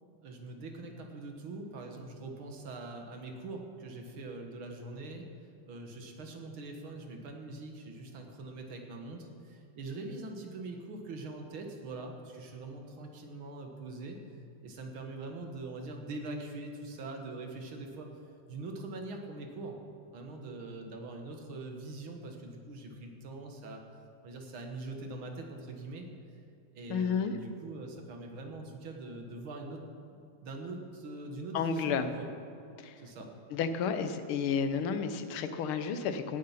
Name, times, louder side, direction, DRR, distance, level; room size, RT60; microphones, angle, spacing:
voice 1, 0.2-5.3 5.7-14.2 14.6-18.1 18.5-19.8 20.1-23.8 24.2-26.1 26.7-29.8 30.4-32.3 33.0-33.3, right 2 dB, 75° right, 3 dB, 2.3 m, -43 dB
voice 2, 26.9-27.3 31.5-32.1 32.8-33.0 33.5-36.4, left 6 dB, 85° left, 10 dB, 1.7 m, -31 dB
18.0 x 7.6 x 5.8 m, 2.7 s
omnidirectional pair, 2.3 m